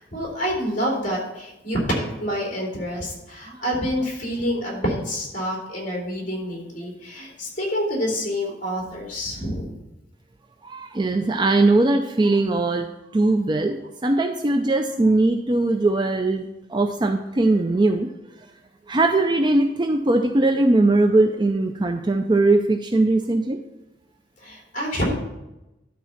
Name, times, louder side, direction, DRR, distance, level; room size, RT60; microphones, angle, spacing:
voice 1, 0.0-9.7 24.4-25.1, equal, 45° left, -2 dB, 3.1 m, -27 dB
voice 2, 10.7-12.9 13.1-13.8 14.0-18.1 18.9-23.6, right 2 dB, 25° right, 6 dB, 0.4 m, -20 dB
12.0 x 4.1 x 5.7 m, 0.94 s
head